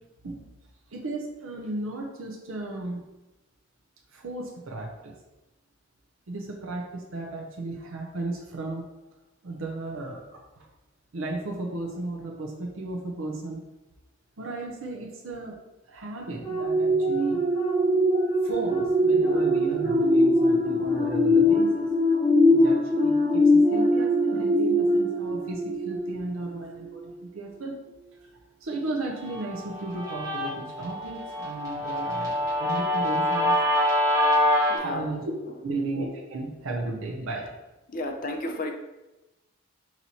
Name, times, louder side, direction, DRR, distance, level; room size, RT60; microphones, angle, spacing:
voice 1, 0.9-3.0 4.1-5.1 6.3-8.8 9.4-10.7 11.1-13.6 14.4-15.6 15.9-17.5 18.4-21.9 22.5-27.8 28.2-28.3 28.6-33.6 34.7-35.3 35.6-37.5, right 2 dB, 75° right, -1 dB, 0.6 m, -34 dB
sound 1, 16.4-26.3 26.8-27.0, left 1 dB, 15° left, 0.8 m, -22 dB
Guitar, 29.3-34.8, left 1 dB, 15° right, 1.5 m, -25 dB
voice 2, 34.7-35.0 37.9-38.7, left 1 dB, 40° left, 4 dB, 0.5 m, -32 dB
4.1 x 3.0 x 4.1 m, 1.0 s
head